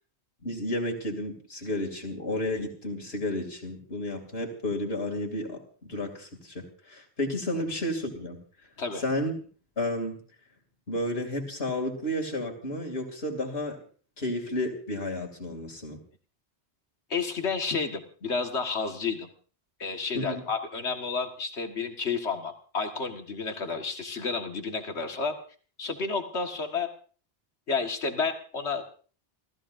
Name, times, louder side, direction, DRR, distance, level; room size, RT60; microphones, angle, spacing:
voice 1, 0.4-8.4 9.0-9.4 9.8-10.2 10.9-13.8 14.2-16.0 20.1-20.4, left 1 dB, 65° left, 2 dB, 3.0 m, -32 dB
voice 2, 17.1-19.3 19.8-25.3 25.8-26.9 27.7-28.8, left 4 dB, 85° left, 5 dB, 1.9 m, -31 dB
30.0 x 15.0 x 2.6 m, 0.40 s
omnidirectional pair, 1.1 m